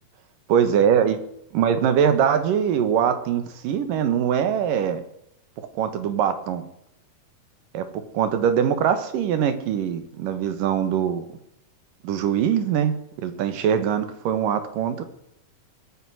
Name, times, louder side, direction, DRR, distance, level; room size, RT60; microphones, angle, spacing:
voice 1, 0.5-1.2 1.5-5.0 5.8-6.7 7.7-7.8 8.1-11.2 12.0-12.9 13.2-15.0, right 8 dB, 65° right, 10 dB, 2.8 m, -22 dB
21.5 x 9.2 x 6.3 m, 0.79 s
omnidirectional pair, 4.4 m